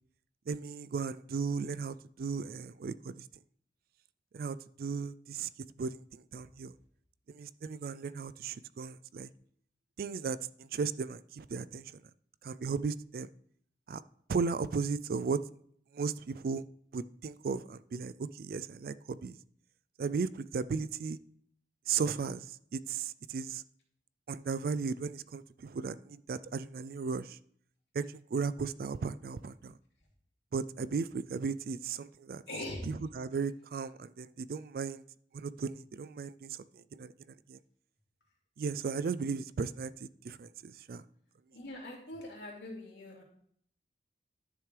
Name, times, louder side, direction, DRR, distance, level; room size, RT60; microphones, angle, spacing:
voice 1, 0.5-3.2 4.3-5.5 5.8-6.7 7.3-9.3 10.0-11.8 12.4-13.3 13.9-14.0 14.3-15.4 15.9-16.6 16.9-19.4 20.0-21.2 21.9-22.5 22.7-23.6 24.3-27.4 27.9-28.1 28.3-29.7 30.5-32.4 32.9-35.0 35.3-36.6 36.9-37.1 37.5-37.6 38.6-41.0, right 5 dB, 55° right, 0.3 m, -36 dB
voice 2, 32.5-32.9 41.5-43.2, left 1 dB, 80° left, 2.9 m, -42 dB
12.0 x 6.8 x 3.3 m
head